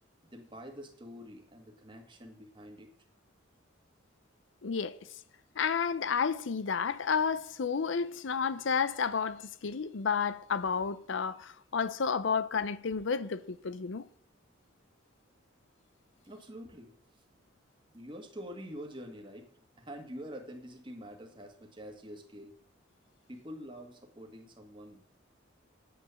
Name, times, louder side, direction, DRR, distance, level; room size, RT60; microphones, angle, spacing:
voice 1, 0.2-2.9 16.2-16.9 17.9-19.5 19.8-22.5 23.3-25.0, equal, 25° right, 1.7 m, -46 dB
voice 2, 4.6-5.0 5.6-14.1, left 6 dB, 70° left, 0.6 m, -31 dB
9.4 x 8.5 x 7.0 m
head